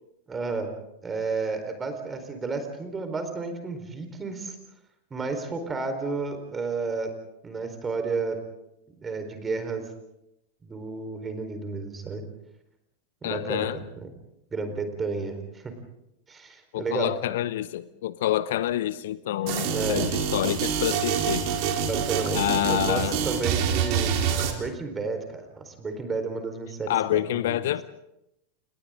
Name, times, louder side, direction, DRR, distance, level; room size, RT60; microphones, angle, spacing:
voice 1, 0.3-0.7 1.0-4.6 5.1-7.1 7.4-8.4 9.0-9.8 10.6-12.2 13.2-14.1 14.5-15.7 16.3-17.1 19.7-20.1 21.9-22.4 22.7-24.1 24.6-27.6, right 4 dB, 15° right, 7 dB, 4.4 m, -32 dB
voice 2, 13.2-13.8 16.7-21.4 22.3-23.2 26.9-27.8, left 13 dB, 55° left, 17 dB, 0.8 m, -27 dB
sound 1, 19.5-24.5, right 7 dB, 45° right, 3.8 m, -26 dB
30.0 x 29.5 x 3.8 m, 0.84 s
figure-of-eight pair, 90°, 0 cm